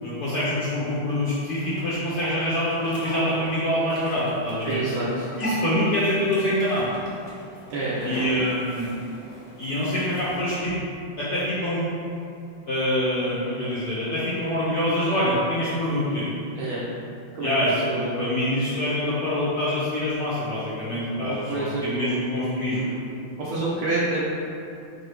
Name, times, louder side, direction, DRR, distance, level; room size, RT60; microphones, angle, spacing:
voice 1, 0.0-4.8 5.4-6.9 8.0-8.9 9.6-10.7 11.2-11.8 12.7-16.3 17.4-22.9, left 1 dB, 70° left, -9 dB, 0.9 m, -25 dB
sound 1, 1.5-10.4, equal, 40° left, 1.1 m, -41 dB
voice 2, 4.6-5.3 7.7-8.2 16.6-16.8 17.3-17.5 17.8-18.1 21.2-22.2 22.7-23.0 23.4-24.2, right 2 dB, 75° right, -8 dB, 1.4 m, -28 dB
4.6 x 2.7 x 3.2 m, 2.6 s
omnidirectional pair, 2.3 m